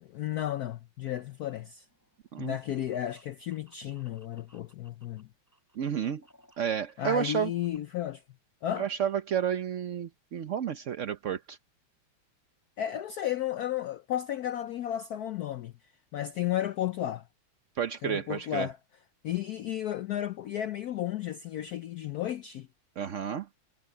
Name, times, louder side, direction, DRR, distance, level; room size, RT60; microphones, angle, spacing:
voice 1, 0.1-1.9 2.4-5.3 7.0-8.2 8.6-8.9 12.8-15.7 16.1-17.2 18.0-18.8 19.2-22.7, left 12 dB, 85° left, 0.8 m, -33 dB
sound 1, 1.8-5.2 5.5-7.8, equal, 5° left, 7.4 m, -61 dB
voice 2, 5.8-6.2 6.6-7.5 8.8-11.6 17.8-18.7 23.0-23.5, right 8 dB, 60° right, 0.8 m, -31 dB
omnidirectional pair, 2.3 m